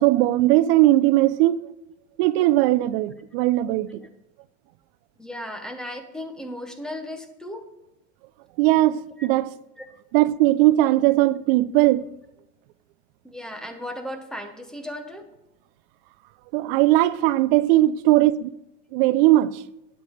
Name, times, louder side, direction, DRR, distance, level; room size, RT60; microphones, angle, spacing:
voice 1, 0.0-1.7 2.2-4.0 8.6-9.5 10.1-12.1 16.5-18.5 18.9-19.6, right 16 dB, 55° right, 0.5 m, -19 dB
voice 2, 5.2-7.6 9.2-9.3 9.8-9.9 13.2-15.2, left 1 dB, ahead, 0.8 m, -36 dB
9.2 x 7.5 x 4.9 m
supercardioid pair, 145°, 34 cm